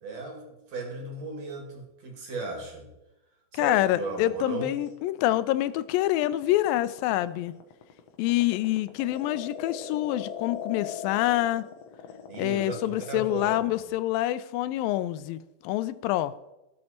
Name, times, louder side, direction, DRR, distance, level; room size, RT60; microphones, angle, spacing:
voice 1, 0.0-2.9 3.5-4.7 12.3-13.8, right 3 dB, 50° right, 1 dB, 3.2 m, -36 dB
voice 2, 3.5-7.5 8.2-11.7 12.4-16.3, left 15 dB, 80° left, 15 dB, 2.2 m, -26 dB
sound 1, 4.9-13.8, left 7 dB, 65° left, 1.6 m, -40 dB
18.0 x 6.5 x 4.3 m, 0.96 s
omnidirectional pair, 4.2 m